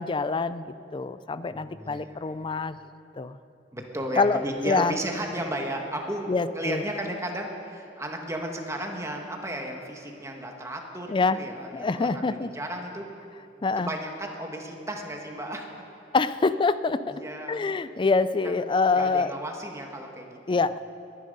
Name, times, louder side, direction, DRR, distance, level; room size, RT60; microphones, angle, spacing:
voice 1, 0.0-2.8 3.2-3.4 4.2-4.9 6.3-6.8 11.1-11.4 11.7-12.5 13.6-13.9 16.1-17.1 17.5-19.3 20.5-20.7, left 4 dB, 25° left, 14 dB, 0.4 m, -25 dB
voice 2, 1.5-2.2 3.7-13.1 13.5-15.8 17.1-17.6 18.4-18.6 18.9-20.6, right 1 dB, 15° right, 2 dB, 1.5 m, -34 dB
21.5 x 10.0 x 5.4 m, 2.8 s
head